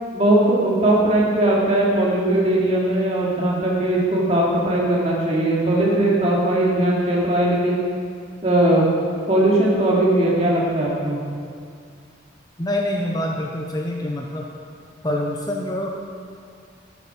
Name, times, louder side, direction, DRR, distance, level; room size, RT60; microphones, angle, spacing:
voice 1, 0.1-7.8 8.4-8.8 9.3-11.2, right 1 dB, 30° right, -5 dB, 2.5 m, -19 dB
voice 2, 12.6-14.5 15.0-15.9, left 1 dB, 20° left, 0 dB, 0.8 m, -25 dB
11.0 x 10.0 x 6.0 m, 2.2 s
head